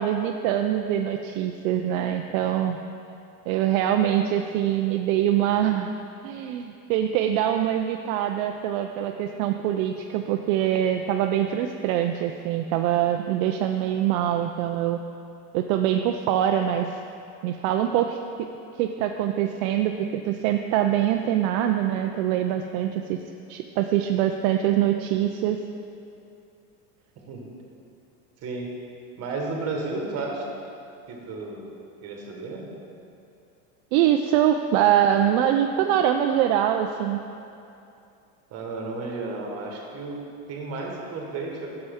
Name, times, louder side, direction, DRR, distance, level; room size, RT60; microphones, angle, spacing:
voice 1, 0.0-2.8 3.5-5.9 6.2-15.0 15.5-16.9 17.4-18.5 18.8-23.2 23.5-25.6 33.9-37.2, right 11 dB, 65° right, 5 dB, 0.5 m, -24 dB
voice 2, 29.2-30.5 31.1-31.7 32.0-32.7 38.5-41.8, right 3 dB, 35° right, 0 dB, 1.4 m, -33 dB
9.6 x 6.8 x 3.5 m, 2.6 s
supercardioid pair, 140°, 44 cm